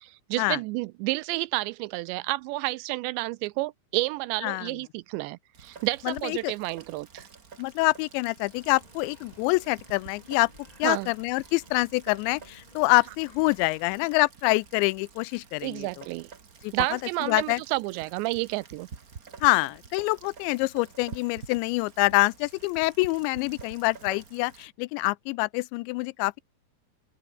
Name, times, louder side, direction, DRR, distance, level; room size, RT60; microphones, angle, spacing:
voice 1, 0.0-7.3 10.8-11.1 15.6-16.3 16.7-18.9, right 21 dB, 85° right, 2.8 m, -30 dB
Rain, 5.5-24.7, right 5 dB, 60° right, 0.9 m, -49 dB
voice 2, 6.1-6.5 7.6-10.5 10.8-16.0 16.6-17.6 19.4-26.4, left 24 dB, 90° left, 2.8 m, -26 dB
sound 1, 8.5-14.1, left 1 dB, 10° left, 3.4 m, -55 dB
open air
omnidirectional pair, 5.1 m